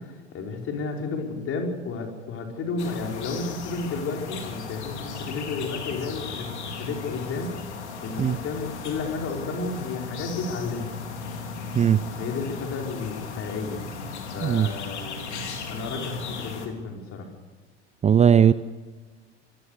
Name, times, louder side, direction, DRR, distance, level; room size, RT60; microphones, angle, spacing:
voice 1, 0.0-7.6 8.0-11.0 12.2-13.8 14.3-17.3, left 4 dB, 40° left, 2 dB, 5.3 m, -32 dB
sound 1, 2.8-16.7, left 4 dB, 75° left, 3.8 m, -36 dB
voice 2, 18.0-18.5, right 8 dB, 20° right, 16 dB, 0.6 m, -17 dB
25.5 x 20.0 x 6.8 m, 1.4 s
figure-of-eight pair, 70°, 35 cm